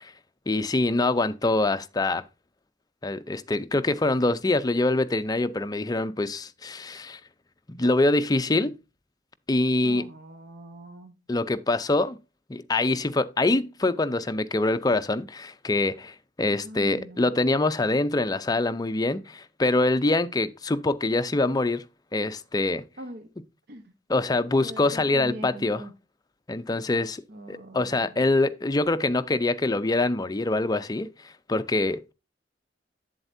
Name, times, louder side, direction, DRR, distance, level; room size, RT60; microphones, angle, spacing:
voice 1, 0.5-2.2 3.0-7.2 7.7-8.7 9.5-10.1 11.3-12.2 12.5-21.8 22.1-22.8 24.1-25.8 26.5-27.2 27.5-31.1 31.5-32.1, left 2 dB, 20° left, 0.5 m, -24 dB
voice 2, 8.3-8.7 9.8-11.2 16.6-17.3 23.0-23.3 23.7-23.9 24.6-25.9 27.3-28.3, right 1 dB, 60° right, 1.0 m, -42 dB
8.0 x 7.7 x 2.6 m
head